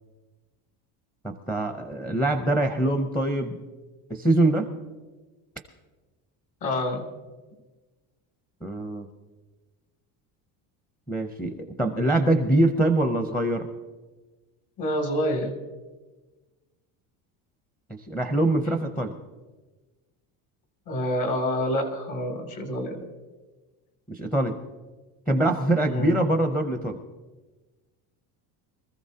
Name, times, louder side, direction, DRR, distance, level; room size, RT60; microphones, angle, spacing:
voice 1, 1.2-3.6 4.1-4.7 8.6-9.1 11.1-13.7 18.1-19.1 24.1-24.5 25.3-27.0, right 1 dB, 5° left, 4 dB, 0.6 m, -24 dB
voice 2, 6.6-7.0 14.8-15.5 20.9-23.1 25.9-26.2, left 1 dB, 50° left, 2 dB, 2.7 m, -27 dB
24.0 x 14.5 x 2.8 m, 1.2 s
cardioid pair, 170°, 40 cm